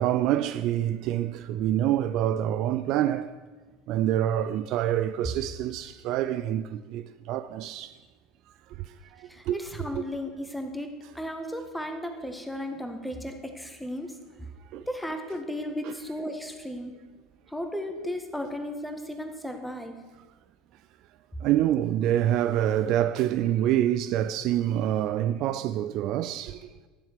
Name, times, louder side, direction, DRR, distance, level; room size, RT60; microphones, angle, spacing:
voice 1, 0.0-3.4 3.9-8.0 8.8-9.6 9.9-10.0 14.7-14.8 15.8-15.9 21.4-26.7, right 12 dB, 50° right, 0.4 m, -26 dB
voice 2, 9.3-10.9 11.1-14.1 14.9-16.9 17.5-19.9, left 1 dB, 5° left, 1.7 m, -35 dB
12.5 x 7.2 x 6.6 m
figure-of-eight pair, 70°, 0 cm